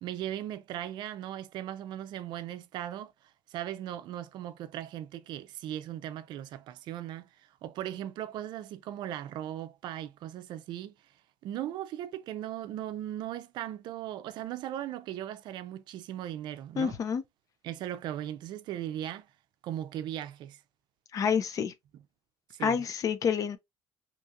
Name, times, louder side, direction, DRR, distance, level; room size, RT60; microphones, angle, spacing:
voice 1, 0.0-3.1 3.5-7.3 7.6-10.9 11.4-17.0 17.6-19.3 19.6-20.6 22.5-22.8, right 12 dB, 65° right, 0.4 m, -38 dB
voice 2, 16.8-17.2 21.1-21.7 22.6-23.6, left 7 dB, 45° left, 0.5 m, -28 dB
2.9 x 2.8 x 2.3 m
cardioid pair, 110°, 8 cm